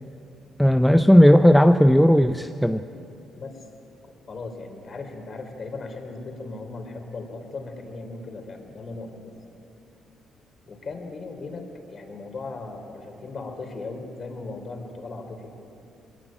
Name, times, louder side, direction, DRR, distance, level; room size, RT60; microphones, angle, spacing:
voice 1, 0.6-2.8, equal, 5° left, 9 dB, 0.7 m, -15 dB
voice 2, 3.4-3.7 4.3-9.3 10.7-15.5, left 3 dB, 45° left, 4 dB, 3.8 m, -37 dB
20.5 x 18.0 x 8.9 m, 2.7 s
supercardioid pair, 60°, 0 cm